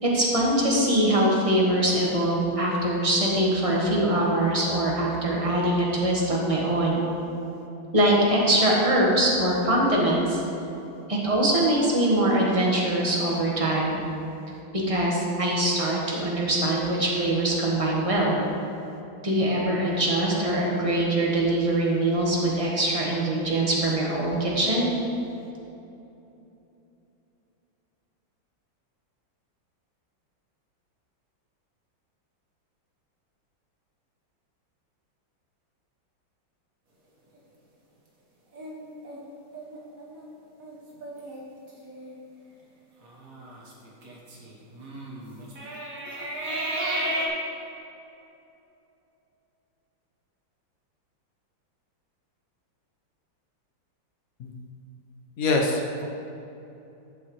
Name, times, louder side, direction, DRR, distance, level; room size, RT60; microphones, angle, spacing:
voice 1, 0.0-7.0 7.9-10.4 11.1-14.0 14.9-18.3 19.2-24.9, right 1 dB, 20° right, -4 dB, 1.3 m, -23 dB
sound 1, 38.5-40.2 40.6-40.7 41.0-41.4 41.8-42.1 43.0-47.3, right 1 dB, 45° right, 1.7 m, -34 dB
voice 2, 55.4-56.0, left 2 dB, 55° left, 1 dB, 1.2 m, -24 dB
11.5 x 7.6 x 3.2 m, 2.9 s
omnidirectional pair, 2.1 m